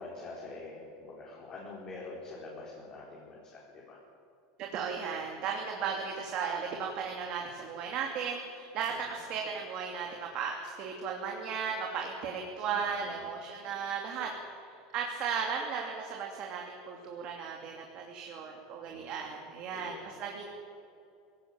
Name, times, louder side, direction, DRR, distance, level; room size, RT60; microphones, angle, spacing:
voice 1, 0.0-4.0 12.7-13.2 18.9-19.3 19.7-20.1, left 3 dB, 35° left, -3 dB, 4.5 m, -46 dB
voice 2, 4.6-14.3 14.6-20.5, right 6 dB, 45° right, 1 dB, 2.8 m, -36 dB
19.0 x 17.5 x 8.9 m, 2.6 s
supercardioid pair, 140°, 2 cm